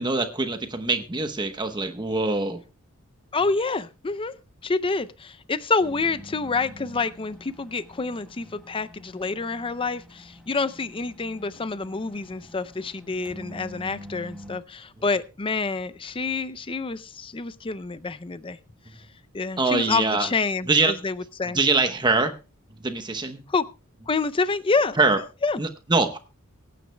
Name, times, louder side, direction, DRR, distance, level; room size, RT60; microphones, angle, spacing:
voice 1, 0.0-2.6 19.6-20.3 20.7-20.9 21.5-22.3 22.8-23.4 25.0-25.2 25.6-26.2, right 3 dB, 20° right, 7 dB, 0.9 m, -23 dB
voice 2, 3.3-4.3 4.6-18.6 19.3-21.6 23.5-23.6 24.1-25.1 25.4-25.6, left 4 dB, 25° left, 14 dB, 0.5 m, -27 dB
sound 1, 5.8-14.6, equal, ahead, 1.6 m, -46 dB
24.0 x 9.3 x 2.2 m, 0.30 s
head